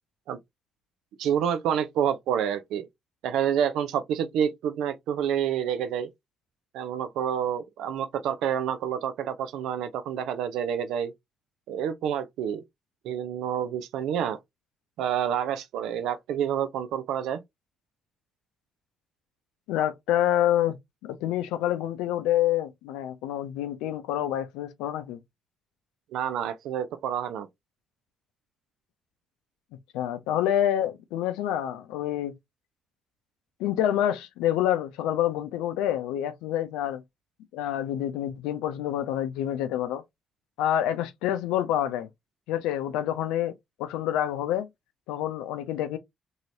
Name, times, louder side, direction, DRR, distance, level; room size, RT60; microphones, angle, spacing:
voice 1, 1.2-2.9 3.2-6.1 6.7-11.1 11.7-12.6 13.0-14.4 15.0-17.4 26.1-27.5, right 9 dB, 75° right, 0.5 m, -28 dB
voice 2, 19.7-20.8 21.0-25.2 29.9-32.3 33.6-37.0 37.5-40.0 40.6-42.1 42.5-43.5 43.8-44.7 45.1-46.0, left 11 dB, 80° left, 0.4 m, -27 dB
3.1 x 2.7 x 2.6 m
hypercardioid pair, 40°, 0 cm